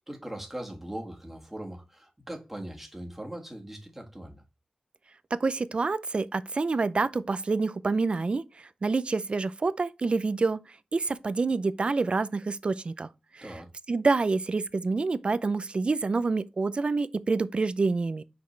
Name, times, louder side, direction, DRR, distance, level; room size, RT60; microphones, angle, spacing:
voice 1, 0.0-4.4 13.4-13.7, right 1 dB, 10° right, 1.7 m, -40 dB
voice 2, 5.3-10.6 10.9-13.1 13.3-13.4 13.9-18.2, right 3 dB, 45° right, 0.4 m, -27 dB
5.9 x 5.3 x 3.2 m
wide cardioid pair, 100°, 3 cm